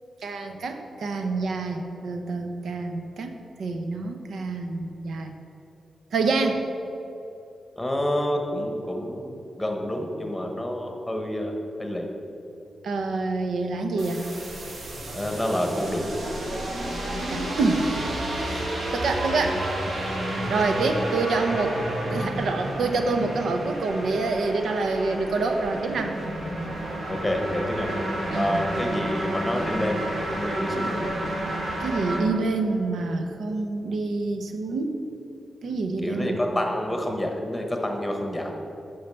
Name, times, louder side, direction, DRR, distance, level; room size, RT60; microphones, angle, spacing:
voice 1, 0.2-3.3 3.6-5.3 6.1-6.6 12.8-14.2 17.3-18.0 18.4-18.6 18.9-20.0 20.5-26.1 28.3-28.6 31.8-35.0 35.6-36.4, right 3 dB, 80° right, 5 dB, 0.9 m, -27 dB
voice 2, 7.8-11.5 11.8-12.1 15.1-16.1 27.1-27.9 28.3-31.0 36.0-38.6, left 1 dB, 5° left, 2 dB, 1.1 m, -28 dB
sound 1, 14.0-32.2, right 1 dB, 55° right, 1.9 m, -31 dB
8.8 x 5.7 x 6.8 m, 2.8 s
wide cardioid pair, 170°, 0 cm